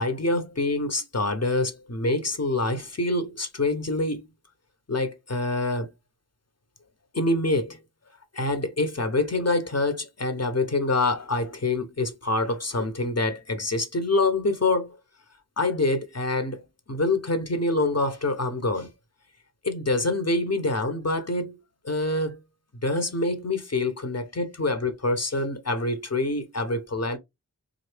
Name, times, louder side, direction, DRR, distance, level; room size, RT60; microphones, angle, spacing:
voice 1, 0.0-4.2 4.9-5.9 7.1-7.8 8.3-15.0 15.6-16.6 16.9-18.9 19.6-21.5 21.8-22.4 22.8-27.2, left 2 dB, 45° left, 1.1 m, -26 dB
3.9 x 2.6 x 3.5 m
wide cardioid pair, 45°, 37 cm